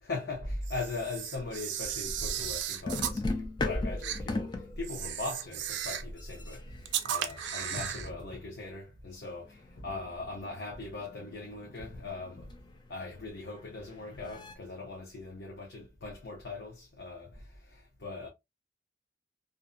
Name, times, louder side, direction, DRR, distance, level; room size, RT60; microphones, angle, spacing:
voice 1, 0.0-12.5 12.9-18.3, left 2 dB, 65° left, 0.7 m, -39 dB
Camera, 0.6-3.2 4.0-4.2 4.8-6.1 6.8-8.1, right 10 dB, 75° right, 0.4 m, -35 dB
sound 1, 2.0-2.6 2.8-5.6 6.1-8.5 9.5-14.5, left 2 dB, 25° left, 0.3 m, -39 dB
2.6 x 2.1 x 2.4 m
head